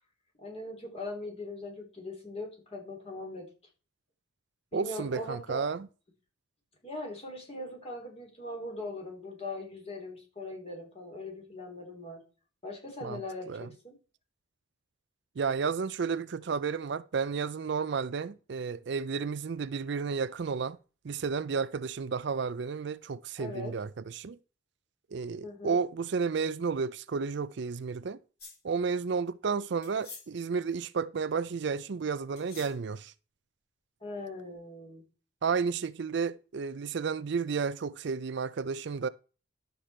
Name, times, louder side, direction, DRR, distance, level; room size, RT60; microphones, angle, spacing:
voice 1, 0.4-3.5 4.7-5.7 6.8-12.2 12.6-13.9 23.4-23.7 25.4-25.8 34.0-35.0, left 2 dB, 30° left, 3.6 m, -40 dB
voice 2, 4.7-5.9 13.0-13.2 13.5-13.7 15.4-20.8 21.0-24.4 25.1-28.2 28.6-33.1 35.4-39.1, right 5 dB, 55° right, 0.4 m, -32 dB
sound 1, 28.4-28.6 29.8-30.3 32.4-32.7, left 4 dB, 50° left, 6.4 m, -47 dB
11.5 x 6.7 x 4.4 m
head